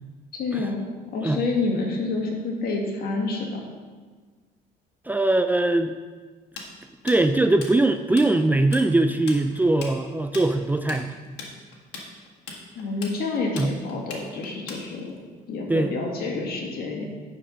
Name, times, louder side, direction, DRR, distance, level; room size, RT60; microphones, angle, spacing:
voice 1, 0.3-3.6 12.8-15.1 15.5-17.1, left 3 dB, 65° left, 0 dB, 1.9 m, -28 dB
voice 2, 5.1-5.9 7.0-11.1 13.6-13.7 15.7-15.9, right 2 dB, 10° right, 8 dB, 0.4 m, -21 dB
Tools, 6.6-8.3 8.5-8.9 9.1-15.2, left 4 dB, 85° left, 1.7 m, -38 dB
9.8 x 4.7 x 6.2 m, 1.5 s
cardioid pair, 110°, 17 cm